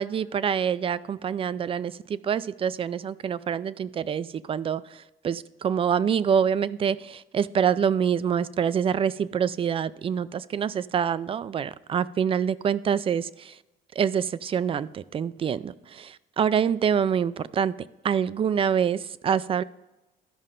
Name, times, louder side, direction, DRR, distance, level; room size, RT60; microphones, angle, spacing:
voice 1, 0.0-13.6 14.0-17.7 18.0-19.6, right 7 dB, 35° right, 17 dB, 0.4 m, -26 dB
13.5 x 5.5 x 3.7 m, 1.0 s
cardioid pair, 110°, 17 cm